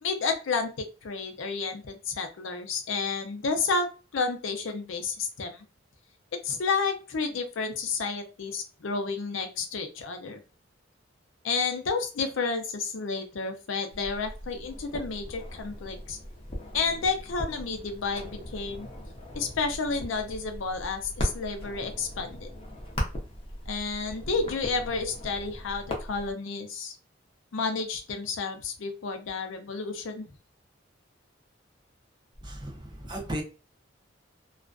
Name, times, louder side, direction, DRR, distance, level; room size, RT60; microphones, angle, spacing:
voice 1, 0.0-5.6 6.4-10.4 11.4-16.2 16.7-18.9 19.3-22.5 23.7-27.0 27.5-30.3, left 4 dB, 80° left, 0.5 m, -31 dB
sound 1, 13.9-26.3, left 1 dB, 30° left, 0.6 m, -38 dB
voice 2, 32.4-33.4, right 1 dB, 25° right, 0.6 m, -35 dB
2.4 x 2.2 x 2.4 m
head